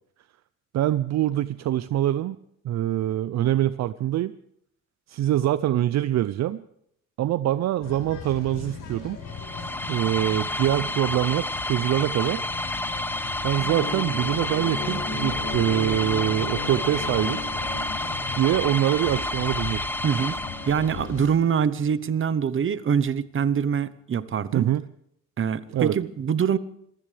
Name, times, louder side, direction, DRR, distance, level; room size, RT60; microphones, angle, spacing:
voice 1, 0.7-2.4 2.6-4.3 5.1-6.6 7.2-9.2 9.9-12.4 13.4-17.4 18.3-19.8 24.5-24.8 25.7-25.9, right 13 dB, 65° right, 15 dB, 0.5 m, -24 dB
sound 1, 7.8-21.3, left 4 dB, 85° left, 6.3 m, -36 dB
sound 2, 9.2-21.1, left 1 dB, 5° left, 0.9 m, -30 dB
voice 2, 20.0-20.3 20.7-24.7 25.4-26.6, right 7 dB, 40° right, 15 dB, 0.9 m, -24 dB
25.5 x 15.0 x 3.4 m, 0.72 s
cardioid pair, 90°, 30 cm